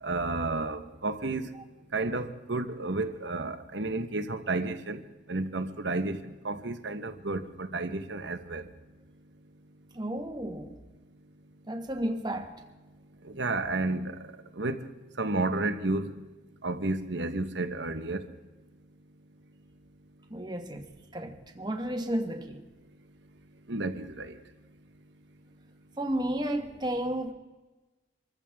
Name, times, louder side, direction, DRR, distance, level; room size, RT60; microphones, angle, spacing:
voice 1, 0.0-1.5 1.9-5.0 5.3-8.6 13.3-14.2 14.6-14.8 15.2-16.1 16.6-18.2 23.7-24.4, right 2 dB, 75° right, 1.2 m, -31 dB
voice 2, 9.9-10.8 11.7-12.5 20.3-20.9 21.1-22.6 26.0-27.3, right 1 dB, 25° right, 1.4 m, -32 dB
25.5 x 14.5 x 3.6 m
head